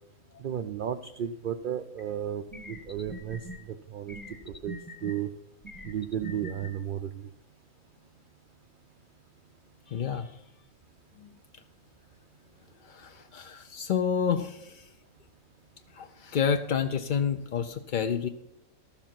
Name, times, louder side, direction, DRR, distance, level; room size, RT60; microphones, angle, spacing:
voice 1, 0.4-3.4 3.9-4.2 4.6-4.7 5.0-5.3 5.8-7.2, right 9 dB, 60° right, 7 dB, 0.5 m, -33 dB
sound 1, 2.0-2.1 2.5-3.6 4.1-5.1 5.6-6.7, right 1 dB, 15° left, 1.1 m, -42 dB
voice 2, 9.9-10.3 11.2-11.3 12.8-14.8 15.9-18.3, left 7 dB, 60° left, 8 dB, 0.5 m, -29 dB
13.0 x 7.2 x 5.8 m, 0.86 s
omnidirectional pair, 1.5 m